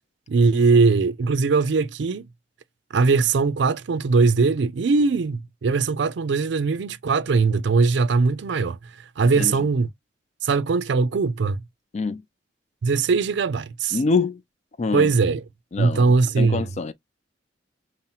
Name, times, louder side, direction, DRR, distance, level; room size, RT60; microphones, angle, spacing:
voice 1, 0.3-2.3 2.9-8.8 9.2-9.9 10.4-11.6 12.8-14.0 14.9-15.4 15.8-16.7, right 4 dB, 65° right, 0.4 m, -20 dB
voice 2, 13.9-14.4 14.8-15.1 15.7-16.1 16.4-16.9, left 4 dB, 40° left, 0.4 m, -24 dB
5.5 x 2.0 x 2.7 m
head